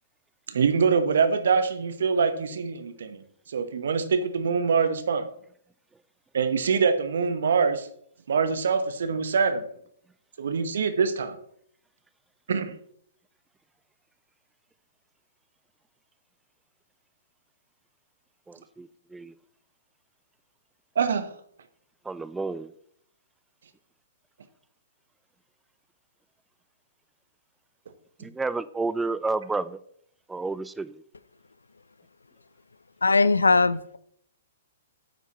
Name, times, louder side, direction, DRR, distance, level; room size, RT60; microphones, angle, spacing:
voice 1, 0.5-3.2 3.5-5.3 6.3-7.9 8.3-9.7 10.4-11.4 12.5-12.8 21.0-21.3, right 5 dB, 65° right, 1.0 m, -24 dB
voice 2, 18.5-19.3 22.1-22.7 28.2-29.8 30.3-31.0, right 3 dB, 10° right, 0.4 m, -31 dB
voice 3, 33.0-34.0, left 3 dB, 80° left, 0.5 m, -20 dB
9.3 x 8.1 x 3.0 m
figure-of-eight pair, 120°, 0 cm